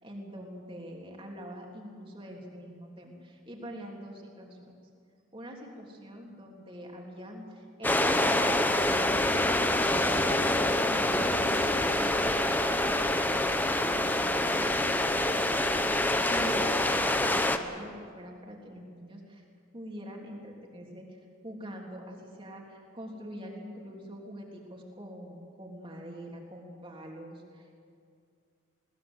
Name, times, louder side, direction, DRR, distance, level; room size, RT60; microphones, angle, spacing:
voice 1, 0.0-4.7 5.3-9.7 10.0-13.2 13.5-15.3 16.2-19.4 19.7-27.8, equal, 25° right, -1 dB, 3.4 m, -44 dB
sound 1, 7.8-17.6, left 1 dB, 10° left, 0.8 m, -26 dB
21.0 x 19.5 x 8.1 m, 2.3 s
head